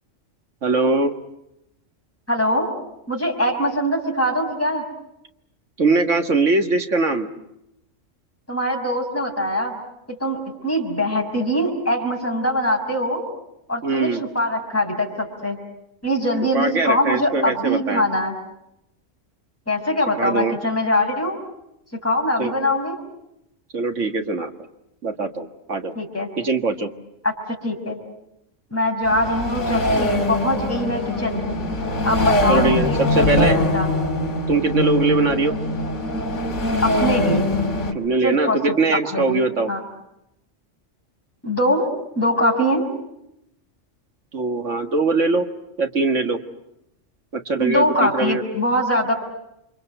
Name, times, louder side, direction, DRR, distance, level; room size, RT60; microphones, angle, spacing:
voice 1, 0.6-1.1 5.8-7.3 13.8-14.2 16.5-18.0 20.2-20.6 22.4-22.5 23.7-24.5 25.0-25.9 26.4-26.9 32.5-33.6 34.5-35.5 37.9-39.7 44.3-45.5 45.8-46.4 47.3-48.5, right 3 dB, 70° right, 6 dB, 2.1 m, -21 dB
voice 2, 2.3-2.7 3.1-4.8 8.5-9.8 10.1-13.2 13.7-15.6 16.0-18.3 19.7-21.4 22.0-23.0 26.0-26.3 27.2-27.3 27.6-28.0 28.7-31.4 32.0-33.9 36.8-37.5 38.2-38.6 39.1-39.4 39.7-39.8 41.4-41.9 42.2-42.9 47.6-49.1, left 1 dB, 10° left, -1 dB, 5.7 m, -22 dB
sound 1, 29.0-37.9, left 1 dB, 70° left, 2.9 m, -22 dB
29.5 x 25.5 x 7.9 m, 0.83 s
omnidirectional pair, 1.3 m